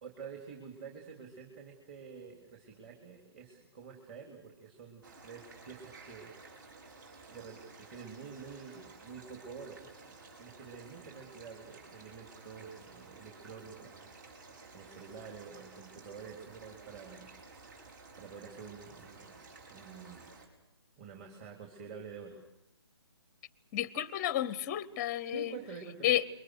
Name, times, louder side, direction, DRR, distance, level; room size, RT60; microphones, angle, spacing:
voice 1, 0.0-6.3 7.3-14.1 14.7-17.3 17.8-17.9 18.2-20.3 21.0-22.4 25.3-26.1, right 6 dB, 25° right, 1 dB, 3.4 m, -48 dB
sound 1, 5.0-20.5, right 3 dB, 45° right, 5.4 m, -54 dB
voice 2, 23.7-25.5 26.0-26.3, left 12 dB, 20° left, 18 dB, 0.8 m, -31 dB
28.5 x 23.0 x 6.6 m, 0.86 s
figure-of-eight pair, 145°, 14 cm